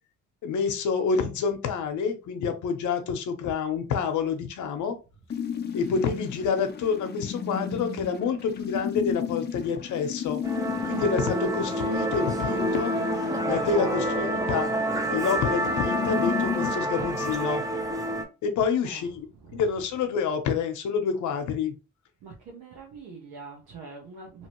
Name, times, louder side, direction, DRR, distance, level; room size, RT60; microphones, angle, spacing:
voice 1, 0.4-5.0 5.7-10.4 10.8-13.0 13.5-14.7 15.1-17.6 18.4-19.3 19.5-21.8, left 6 dB, 75° left, 0.8 m, -28 dB
sound 1, 5.3-16.7, left 7 dB, 35° left, 0.6 m, -34 dB
voice 2, 5.7-6.1 13.8-14.3 18.8-19.6 22.2-24.5, right 4 dB, 85° right, 1.0 m, -45 dB
Musical instrument, 10.4-18.2, right 1 dB, 10° right, 0.8 m, -28 dB
2.9 x 2.7 x 3.0 m
cardioid pair, 90°, 30 cm